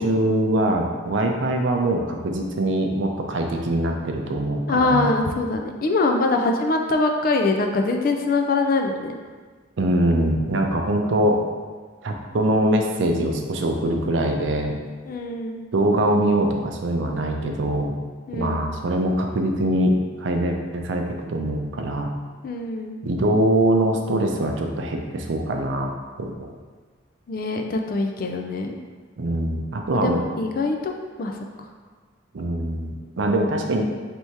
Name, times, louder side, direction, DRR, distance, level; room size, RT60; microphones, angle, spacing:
voice 1, 0.0-5.1 9.8-11.4 12.0-14.7 15.7-17.9 18.3-22.1 23.0-25.9 26.2-26.5 29.2-30.2 32.3-33.8, right 1 dB, 70° right, 3 dB, 0.5 m, -23 dB
voice 2, 4.7-9.2 15.1-15.6 18.3-18.7 22.4-23.0 27.3-28.8 29.9-30.9 31.2-31.4, left 3 dB, 45° left, 3 dB, 0.4 m, -23 dB
3.4 x 2.8 x 4.5 m, 1.5 s
head